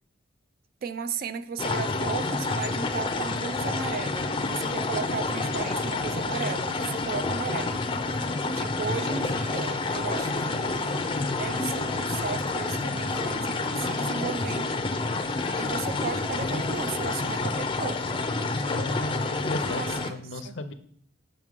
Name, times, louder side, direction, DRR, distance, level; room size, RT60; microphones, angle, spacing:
voice 1, 0.8-7.8 8.5-11.0 11.4-14.9 15.6-18.0 19.6-20.6, right 6 dB, 55° right, 0.4 m, -35 dB
sound 1, 1.6-20.1, left 3 dB, 25° left, 0.4 m, -29 dB
voice 2, 18.7-20.7, left 2 dB, 80° left, 0.6 m, -35 dB
6.0 x 5.7 x 3.6 m
head